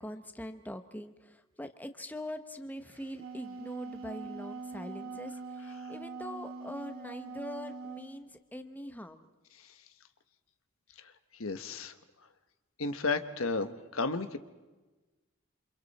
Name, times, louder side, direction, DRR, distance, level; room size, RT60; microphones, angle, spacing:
voice 1, 0.0-9.2, left 1 dB, 10° left, 8 dB, 1.1 m, -43 dB
Wind instrument woodwind instrument, 2.9-8.1, right 3 dB, 70° right, 3.0 m, -43 dB
voice 2, 11.4-11.9 12.8-14.4, left 3 dB, 70° left, 9 dB, 1.3 m, -32 dB
28.5 x 26.5 x 4.3 m, 1.2 s
head